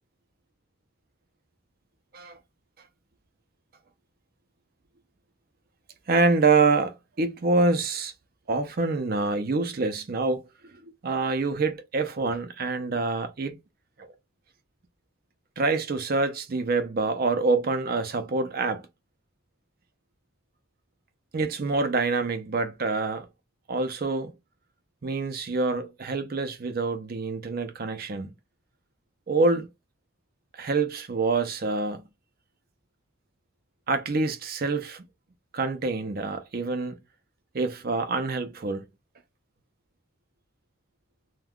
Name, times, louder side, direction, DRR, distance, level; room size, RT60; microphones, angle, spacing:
voice 1, 6.1-8.1 8.5-10.4 10.8-13.6 14.0-14.1 15.6-18.8 21.3-23.3 23.7-24.3 25.0-28.3 29.3-29.7 30.5-32.0 33.9-35.0 35.5-37.0 37.5-38.8, right 3 dB, 45° right, 0.5 m, -26 dB
2.3 x 2.3 x 3.5 m
head